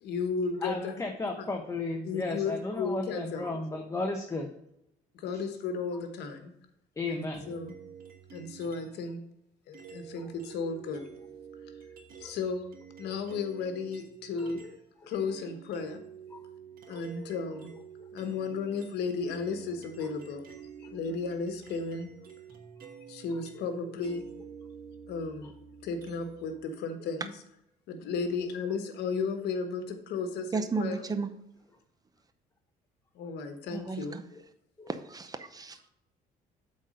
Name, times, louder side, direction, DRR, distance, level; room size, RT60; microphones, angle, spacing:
voice 1, 0.0-1.0 2.0-3.4 5.1-6.5 7.1-7.7 8.3-9.2 9.7-11.1 12.2-12.6 13.0-14.6 15.1-16.0 16.9-17.7 18.1-20.4 20.8-22.1 23.1-24.2 25.1-25.5 25.8-27.3 27.9-31.0 33.1-34.2, left 4 dB, 75° left, 7 dB, 1.2 m, -34 dB
voice 2, 0.6-4.5 5.3-5.4 5.9-6.0 7.0-7.5 10.1-10.3 12.2-12.3 13.0-13.2 14.3-14.7 15.0-15.4 16.3-16.4 16.9-17.0 18.0-18.1 20.0-20.1 20.8-21.0 22.8-22.9 23.5-23.6 25.4-25.5 27.0-27.1 34.3-34.4 34.8-34.9, left 2 dB, 15° left, 3 dB, 0.8 m, -36 dB
sound 1, 7.3-9.1 9.7-14.8 15.1-26.5, right 7 dB, 60° right, 1.3 m, -49 dB
voice 3, 30.5-31.3 33.7-34.2 34.9-35.9, right 4 dB, 20° right, 10 dB, 0.7 m, -33 dB
8.1 x 4.0 x 5.2 m, 0.81 s
cardioid pair, 110°, 17 cm